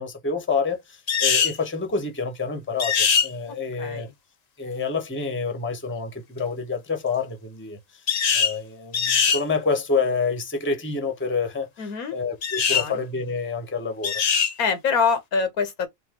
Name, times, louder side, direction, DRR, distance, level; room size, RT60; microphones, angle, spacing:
voice 1, 0.0-4.1 4.6-8.0 8.3-14.2, left 4 dB, 10° left, 0.8 m, -28 dB
sound 1, 1.1-1.6 2.8-3.3 8.1-8.5 8.9-9.4 12.4-12.9 14.0-14.5, left 6 dB, 60° left, 0.4 m, -21 dB
voice 2, 11.8-12.2 12.7-13.0 14.6-15.9, left 5 dB, 90° left, 1.5 m, -25 dB
4.8 x 2.7 x 2.9 m
omnidirectional pair, 1.5 m